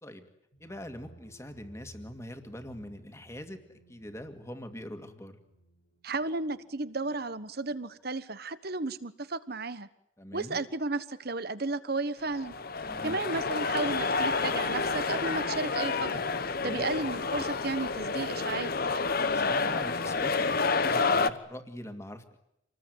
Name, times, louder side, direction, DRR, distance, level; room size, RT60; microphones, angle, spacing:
sound 1, 0.5-8.2, right 1 dB, 80° left, 5.8 m, -58 dB
voice 1, 0.6-5.4 10.2-10.6 12.8-13.2 16.6-16.9 19.3-22.4, left 1 dB, 15° left, 7 dB, 2.3 m, -43 dB
voice 2, 6.0-9.9 10.3-12.5 13.0-16.2 16.6-18.7, right 3 dB, 50° right, 14 dB, 1.3 m, -33 dB
sound 2, 12.3-21.3, left 4 dB, 45° left, 1.1 m, -29 dB
27.0 x 20.0 x 9.5 m, 0.81 s
head